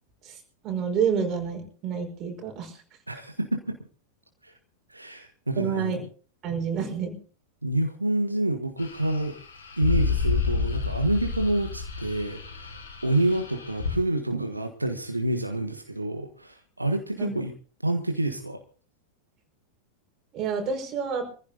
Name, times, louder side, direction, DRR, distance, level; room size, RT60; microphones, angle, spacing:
voice 1, 0.2-2.8 5.6-6.0 6.4-7.2 17.2-17.4 20.3-21.3, right 6 dB, 35° right, 2 dB, 5.1 m, -29 dB
voice 2, 3.1-3.8 4.4-4.5 4.9-6.0 7.6-9.4 9.8-17.5 17.8-18.6, right 1 dB, 85° right, 6 dB, 1.4 m, -28 dB
sound 1, 8.8-14.0, left 5 dB, 70° left, 4.0 m, -30 dB
25.5 x 15.0 x 2.7 m, 0.39 s
figure-of-eight pair, 90°, 0 cm